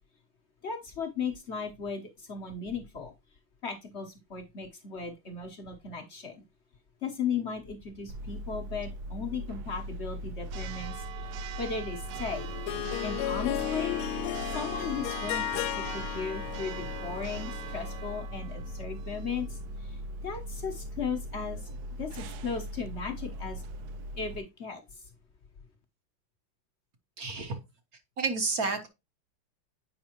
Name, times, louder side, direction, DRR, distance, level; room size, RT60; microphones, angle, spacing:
voice 1, 0.6-3.1 3.6-6.4 7.0-12.5 13.0-14.0 14.5-21.7 22.0-23.6 24.2-25.0, left 5 dB, 45° left, 0.9 m, -36 dB
Church bell, 8.1-24.4, right 1 dB, 90° right, 0.8 m, -39 dB
Harp, 12.3-18.1, left 13 dB, 85° left, 1.5 m, -35 dB
voice 2, 27.2-27.6 28.2-28.9, right 4 dB, 50° right, 1.3 m, -30 dB
8.4 x 5.4 x 2.9 m
omnidirectional pair, 2.4 m